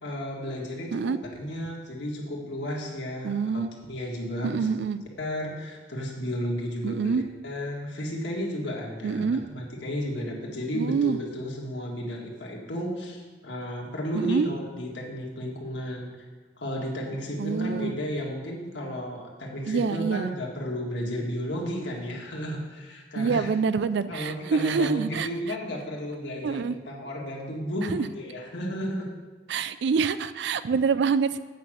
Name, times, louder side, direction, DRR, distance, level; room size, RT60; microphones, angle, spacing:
voice 1, 0.0-3.6 3.9-4.7 5.2-7.1 7.4-16.2 16.6-23.5 24.1-29.1, equal, 65° left, -2 dB, 1.8 m, -33 dB
voice 2, 3.2-3.7 4.4-5.0 6.8-7.2 9.0-9.4 10.7-11.2 14.1-14.5 17.4-18.0 19.7-20.3 23.2-25.3 26.4-26.8 27.9-28.1 29.5-31.4, right 5 dB, 60° right, 14 dB, 0.4 m, -26 dB
8.3 x 5.9 x 6.2 m, 1.3 s
head